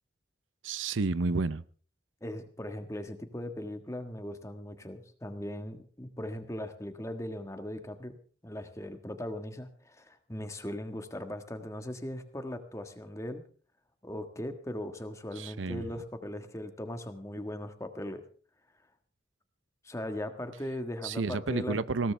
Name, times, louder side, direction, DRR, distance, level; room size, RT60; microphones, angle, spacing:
voice 1, 0.6-1.6 15.4-15.9 21.0-22.1, right 3 dB, 90° right, 16 dB, 0.7 m, -31 dB
voice 2, 2.2-8.2 8.4-13.4 14.0-18.2 19.8-21.8, left 1 dB, 15° left, 7 dB, 1.5 m, -39 dB
20.5 x 17.5 x 3.4 m, 0.41 s
head